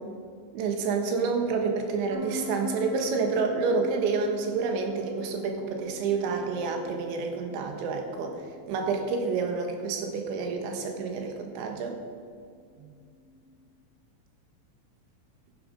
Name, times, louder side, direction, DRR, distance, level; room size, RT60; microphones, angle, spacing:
voice 1, 0.5-8.4 8.7-12.0 12.8-12.9, right 4 dB, 75° right, 3 dB, 3.5 m, -29 dB
sound 1, 2.1-13.6, left 3 dB, 45° right, 2.1 m, -43 dB
11.5 x 10.5 x 5.0 m, 2.2 s
omnidirectional pair, 5.6 m